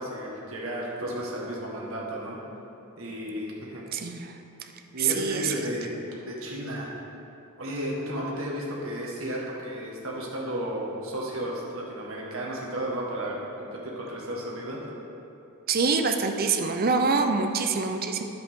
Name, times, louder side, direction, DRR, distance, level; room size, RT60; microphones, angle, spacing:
voice 1, 0.0-2.4 3.0-3.9 4.9-5.9 6.2-6.9 7.6-14.9, equal, 65° right, -3 dB, 1.6 m, -33 dB
voice 2, 3.9-4.4 5.0-5.6 15.7-18.2, right 4 dB, 45° right, 6 dB, 0.5 m, -25 dB
9.9 x 7.7 x 3.6 m, 2.9 s
head